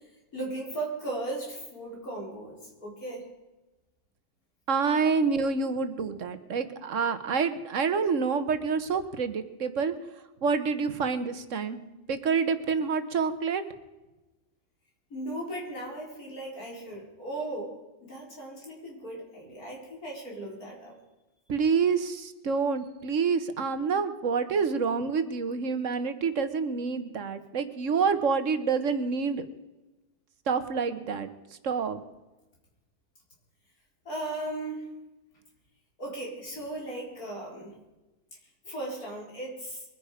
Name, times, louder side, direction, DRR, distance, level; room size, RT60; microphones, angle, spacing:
voice 1, 0.3-3.3 15.1-17.7 18.0-20.9 34.0-34.9 36.0-37.7 38.6-39.8, right 2 dB, 85° left, -2 dB, 4.9 m, -37 dB
voice 2, 4.7-9.9 10.4-11.8 12.1-13.6 21.5-29.5 30.5-31.3 31.6-32.0, right 5 dB, 60° right, 11 dB, 1.4 m, -27 dB
22.5 x 10.0 x 5.0 m, 1.1 s
omnidirectional pair, 1.5 m